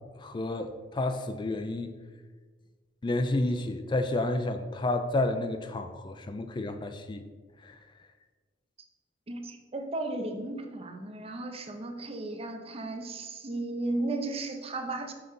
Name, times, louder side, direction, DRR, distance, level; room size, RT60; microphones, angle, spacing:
voice 1, 0.2-1.9 3.0-7.2 7.6-7.7, left 2 dB, 25° left, 8 dB, 0.3 m, -30 dB
voice 2, 9.3-15.1, right 2 dB, 35° right, 5 dB, 0.6 m, -35 dB
5.7 x 3.8 x 5.4 m, 1.4 s
head